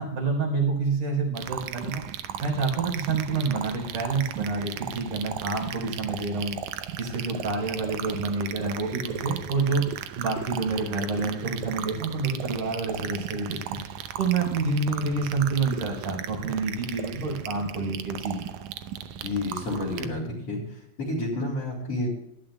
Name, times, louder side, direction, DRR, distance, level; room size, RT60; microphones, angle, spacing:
voice 1, 0.0-2.0 2.4-6.6 7.0-9.8 10.1-13.8 14.2-18.4, right 4 dB, 50° right, -1 dB, 5.0 m, -28 dB
sound 1, 1.4-20.1, right 9 dB, 80° right, 1.7 m, -36 dB
voice 2, 19.2-22.1, left 2 dB, 45° left, -2 dB, 2.9 m, -30 dB
19.0 x 12.0 x 2.3 m, 0.82 s
omnidirectional pair, 4.3 m